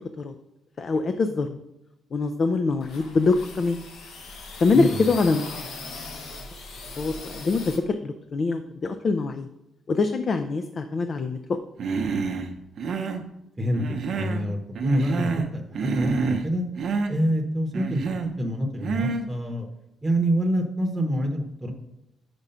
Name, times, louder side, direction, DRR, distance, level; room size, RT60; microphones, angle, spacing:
voice 1, 0.8-1.5 2.1-3.8 4.6-5.5 7.0-9.5 9.9-11.6, left 3 dB, 45° left, 8 dB, 0.4 m, -24 dB
sound 1, 2.7-7.8, left 3 dB, 75° left, 1.2 m, -39 dB
Human voice, 11.8-12.5 12.8-13.3 13.7-14.5 14.8-15.5 15.8-16.5 16.8-17.1 17.7-18.3 18.8-19.3, right 5 dB, 60° right, 0.7 m, -28 dB
voice 2, 14.1-16.6 17.1-19.7 20.0-21.7, equal, 15° right, 2 dB, 0.9 m, -26 dB
5.2 x 4.8 x 5.6 m, 0.86 s
cardioid pair, 90°, 0 cm